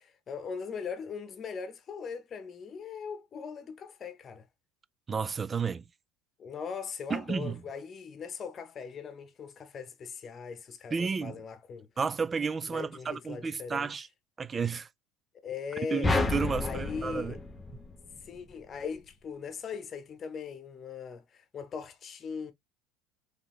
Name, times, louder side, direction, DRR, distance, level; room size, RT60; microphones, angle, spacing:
voice 1, 0.0-4.5 6.4-11.9 12.7-14.0 15.4-16.1 16.6-17.4 18.2-22.5, left 6 dB, 30° left, 1.0 m, -40 dB
voice 2, 5.1-5.8 7.1-7.6 10.9-11.4 12.0-14.1 14.4-14.9 15.9-17.4, right 5 dB, 20° right, 0.3 m, -32 dB
sound 1, 16.0-18.4, left 3 dB, 10° left, 0.6 m, -30 dB
3.8 x 3.5 x 3.1 m
cardioid pair, 140°, 0 cm